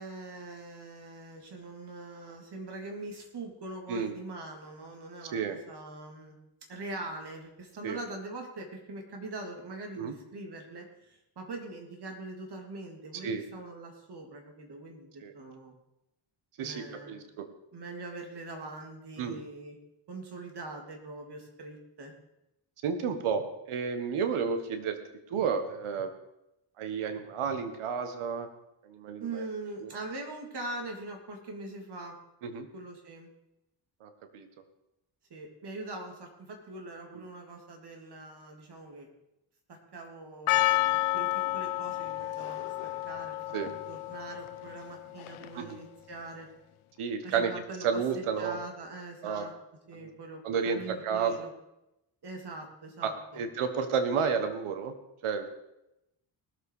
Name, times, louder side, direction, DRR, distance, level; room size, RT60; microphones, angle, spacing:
voice 1, 0.0-6.3 6.7-15.7 16.6-17.2 17.7-19.8 20.1-22.1 29.2-32.2 32.7-33.3 35.3-39.1 39.7-42.6 43.0-46.5 47.2-47.9 48.1-49.5 49.9-51.5 52.2-53.4, right 2 dB, 50° right, 2 dB, 3.2 m, -42 dB
voice 2, 16.6-17.5 19.2-19.5 22.8-25.0 25.3-26.1 26.8-28.5 28.8-29.4 29.8-29.9 32.4-32.7 34.0-34.5 43.5-43.7 45.5-45.8 47.0-47.5 47.8-48.6 49.2-49.5 49.9-50.1 50.4-51.5 53.0-54.9 55.2-55.5, right 6 dB, 85° right, 8 dB, 1.6 m, -31 dB
Percussion, 40.5-45.7, left 17 dB, 80° left, 0.8 m, -31 dB
19.0 x 7.5 x 5.0 m, 0.89 s
cardioid pair, 95°, 49 cm